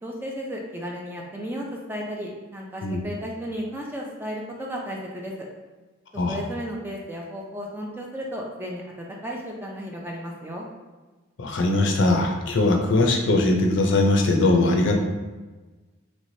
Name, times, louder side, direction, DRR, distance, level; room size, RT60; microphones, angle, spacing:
voice 1, 0.0-5.5 6.3-10.7, equal, 10° right, -1 dB, 0.3 m, -34 dB
voice 2, 11.4-14.9, left 2 dB, 60° left, 2 dB, 0.5 m, -20 dB
3.2 x 3.2 x 2.6 m, 1.2 s
head